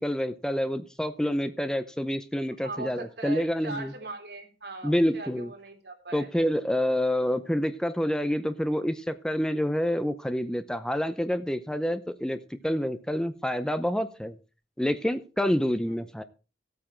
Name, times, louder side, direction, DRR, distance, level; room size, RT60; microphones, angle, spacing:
voice 1, 0.0-3.9 4.8-5.5 6.1-14.3 14.8-16.2, equal, 5° left, 0.6 m, -28 dB
voice 2, 2.6-6.3 15.9-16.0, right 3 dB, 70° right, 3.6 m, -40 dB
15.0 x 8.7 x 4.5 m
head